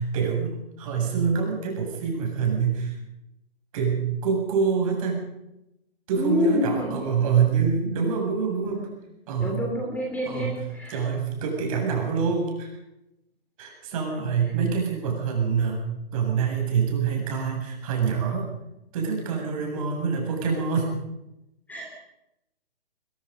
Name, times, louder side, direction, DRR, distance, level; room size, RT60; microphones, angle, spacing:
voice 1, 0.0-3.0 3.7-5.3 6.1-8.9 9.3-9.5 10.3-10.5 10.9-12.7 13.6-15.9 16.1-18.5 18.9-20.9, right 6 dB, 35° right, 0 dB, 7.8 m, -25 dB
voice 2, 6.2-7.0 8.6-8.9 9.4-11.0 21.7-22.0, left 1 dB, 5° left, -1 dB, 3.0 m, -27 dB
22.0 x 21.5 x 5.5 m, 0.88 s
hypercardioid pair, 145°, 30 cm